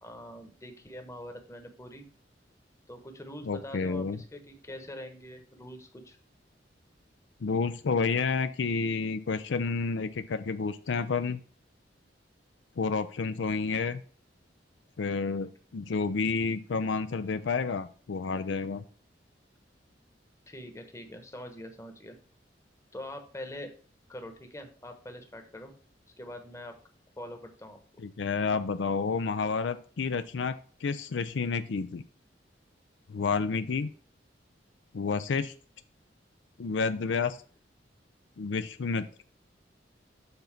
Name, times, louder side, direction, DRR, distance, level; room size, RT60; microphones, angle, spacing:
voice 1, 0.0-2.1 2.9-6.2 20.5-22.2 22.9-23.7 24.1-25.7 26.2-26.7 27.2-27.8, left 1 dB, 15° left, 5 dB, 1.0 m, -44 dB
voice 2, 3.4-4.2 7.4-11.4 12.8-14.0 15.0-18.8 28.0-32.0 33.1-33.9 34.9-35.5 36.6-37.4 38.4-39.1, left 4 dB, 85° left, 11 dB, 0.5 m, -30 dB
7.0 x 4.0 x 5.7 m, 0.41 s
head